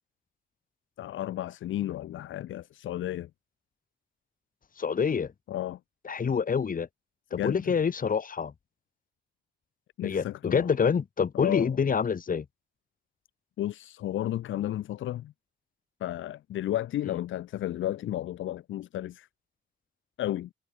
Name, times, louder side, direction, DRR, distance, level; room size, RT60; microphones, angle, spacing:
voice 1, 1.0-3.3 5.5-5.8 7.3-7.8 10.0-10.9 11.3-11.7 13.6-15.3 16.0-19.3 20.2-20.5, left 13 dB, 80° left, 3.3 m, -33 dB
voice 2, 4.8-5.3 6.0-6.9 7.3-8.5 10.0-12.4, left 6 dB, 45° left, 6.8 m, -27 dB
cardioid pair, 90°, 20 cm